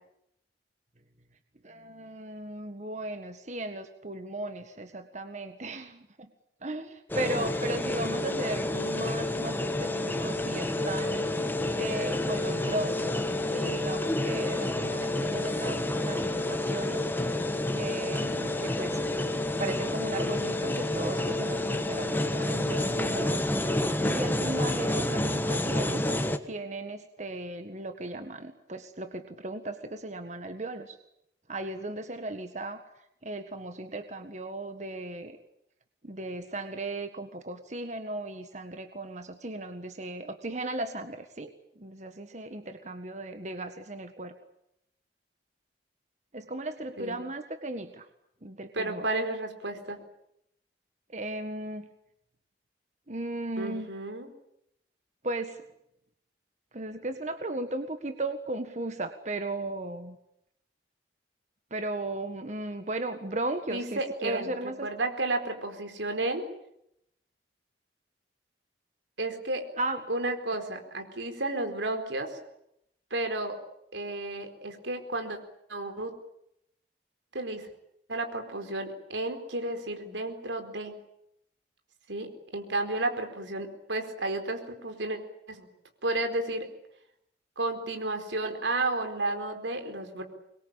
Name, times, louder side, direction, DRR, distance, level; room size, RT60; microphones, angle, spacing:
voice 1, 1.6-6.3 6.6-11.3 11.8-17.0 17.7-19.0 19.6-23.7 24.0-26.1 26.5-31.0 31.5-32.8 33.2-35.4 36.0-44.3 46.3-48.1 48.4-49.1 51.1-51.9 53.1-53.9 55.2-55.6 56.7-60.2 61.7-64.9 69.8-70.1, right 2 dB, 40° right, 8 dB, 1.6 m, -36 dB
sound 1, 7.1-26.4, left 1 dB, 10° left, 1.5 m, -29 dB
voice 2, 48.7-50.0 53.6-54.3 63.7-64.5 64.8-66.4 69.2-69.7 70.1-72.4 73.1-73.6 73.9-75.4 75.7-76.1 77.3-77.7 78.1-81.0 82.1-85.2 85.5-85.7 86.0-86.7 87.6-90.2, right 2 dB, 90° right, 7 dB, 4.5 m, -32 dB
25.0 x 22.0 x 8.9 m, 0.78 s
head